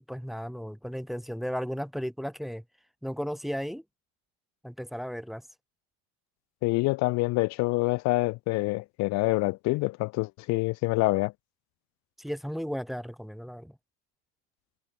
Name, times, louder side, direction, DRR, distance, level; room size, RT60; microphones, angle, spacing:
voice 1, 0.0-2.6 3.0-3.8 4.6-5.4 12.2-13.8, equal, ahead, 1.4 m, -35 dB
voice 2, 6.6-11.3, left 22 dB, 35° left, 0.6 m, -26 dB
supercardioid pair, 150°, 49 cm